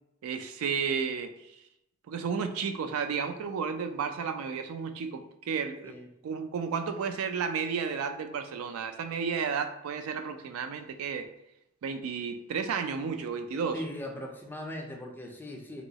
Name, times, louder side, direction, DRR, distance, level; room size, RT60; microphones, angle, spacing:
voice 1, 0.2-1.3 2.1-6.0 6.2-11.3 11.8-13.8, right 6 dB, 75° right, 8 dB, 0.3 m, -32 dB
voice 2, 13.7-15.8, left 1 dB, 10° left, 2 dB, 0.4 m, -39 dB
3.0 x 2.9 x 2.7 m, 0.82 s
head